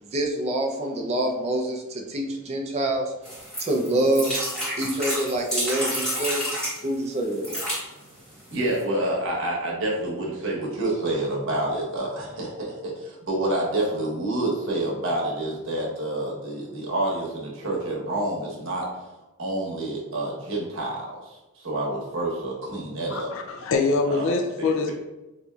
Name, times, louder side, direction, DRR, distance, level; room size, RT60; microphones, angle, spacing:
voice 1, 0.0-3.1 3.6-4.4 4.8-7.5, right 1 dB, 30° right, 1 dB, 0.5 m, -26 dB
sound 1, 3.3-6.8 7.3-7.8 8.5-8.6 8.8-8.9, equal, 5° left, 1.0 m, -29 dB
voice 2, 8.5-18.9 19.4-23.3 24.1-24.7, right 1 dB, 65° right, -3 dB, 1.0 m, -28 dB
voice 3, 23.1-24.9, left 4 dB, 65° left, 3 dB, 0.4 m, -24 dB
4.3 x 2.6 x 2.3 m, 1.0 s
head